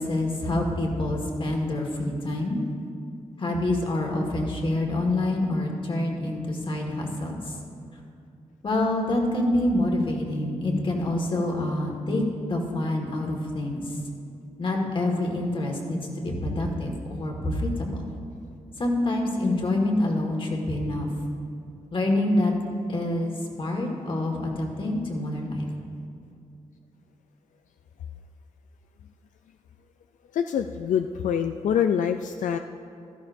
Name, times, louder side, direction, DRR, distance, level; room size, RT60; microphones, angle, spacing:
voice 1, 0.0-2.6 3.4-7.6 8.6-12.2 12.5-14.0 14.6-18.1 18.8-21.1 21.9-22.5 22.9-25.7, left 1 dB, 45° left, 1 dB, 1.8 m, -26 dB
voice 2, 30.3-32.6, left 8 dB, 85° left, 7 dB, 0.4 m, -25 dB
15.5 x 12.5 x 2.6 m, 2.6 s
wide cardioid pair, 125°, 13 cm